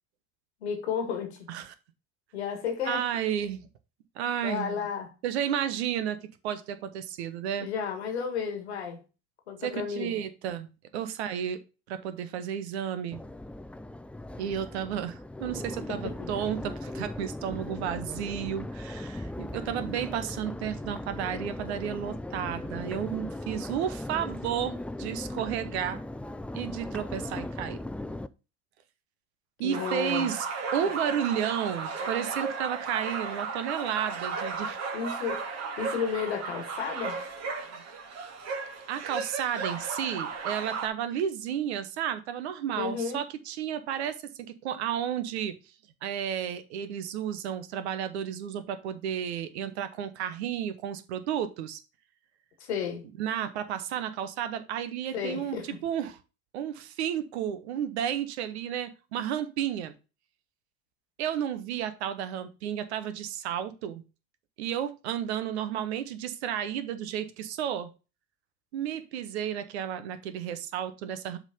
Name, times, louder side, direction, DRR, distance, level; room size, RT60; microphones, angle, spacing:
voice 1, 0.6-1.5 2.3-3.0 4.4-5.1 7.6-9.0 9.5-10.2 15.9-16.3 29.6-30.3 30.8-30.9 34.9-35.4 35.8-37.2 42.8-43.2 52.6-53.0 55.1-55.8, left 7 dB, 85° left, 1.6 m, -33 dB
voice 2, 2.8-3.6 4.2-4.8 5.2-7.7 9.6-10.7 10.9-11.6 11.9-13.2 14.4-26.0 26.5-27.8 29.6-30.5 30.7-34.8 37.6-37.8 38.9-45.6 46.0-51.8 53.2-56.2 56.5-59.9 61.2-64.0 64.6-67.9 68.7-71.4, right 9 dB, 85° right, 0.9 m, -32 dB
Crowd, 13.1-28.3, left 1 dB, 5° left, 0.4 m, -38 dB
sound 1, 29.7-40.9, right 4 dB, 50° right, 1.7 m, -35 dB
7.3 x 3.8 x 5.0 m
hypercardioid pair, 60°, 32 cm